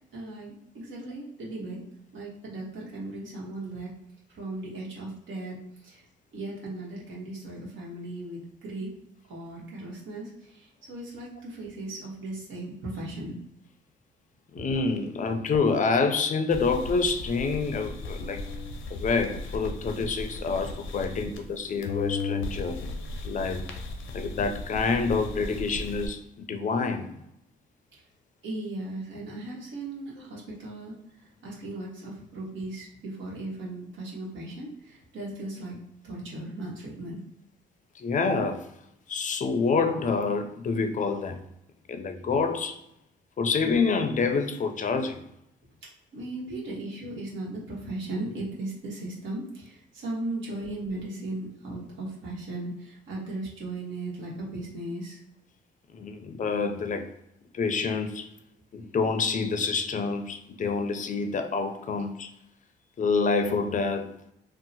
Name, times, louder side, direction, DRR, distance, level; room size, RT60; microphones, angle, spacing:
voice 1, 0.1-1.8 2.1-3.9 4.3-5.6 5.8-6.0 6.3-8.9 9.3-13.4 28.4-30.9 31.4-35.7 36.0-37.2 46.1-55.2, right 2 dB, 75° right, 1.1 m, -37 dB
voice 2, 14.5-18.5 18.9-22.8 23.2-23.7 24.1-27.1 30.2-30.3 38.0-38.7 39.1-41.4 41.9-42.8 43.4-45.3 46.4-46.6 55.9-57.1 57.5-58.3 58.7-62.3 63.0-64.1, left 4 dB, 40° left, 0.5 m, -27 dB
sound 1, 16.5-21.6 21.8-26.1, left 3 dB, 85° left, 0.6 m, -36 dB
2.8 x 2.0 x 4.0 m
cardioid pair, 90°, 20 cm